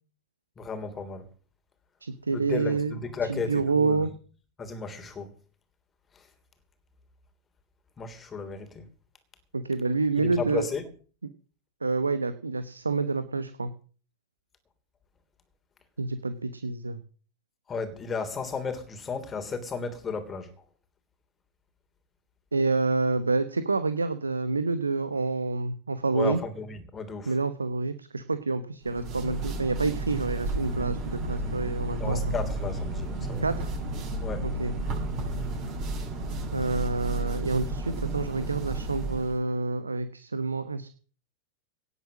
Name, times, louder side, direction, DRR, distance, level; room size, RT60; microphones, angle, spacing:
voice 1, 0.6-1.2 2.3-4.1 4.6-5.3 8.0-8.8 10.2-10.8 17.7-20.5 26.1-27.3 31.9-33.4 34.2-34.5, left 4 dB, 20° left, 3.2 m, -34 dB
voice 2, 2.0-3.0 3.3-4.1 9.5-10.7 11.8-13.7 16.0-17.0 22.5-26.4 27.3-32.2 33.4-33.7 34.4-34.7 36.5-40.9, right 3 dB, 80° right, 1.0 m, -28 dB
sound 1, 28.8-39.4, right 2 dB, 40° right, 6.6 m, -32 dB
18.0 x 8.3 x 6.3 m
figure-of-eight pair, 90°, 0 cm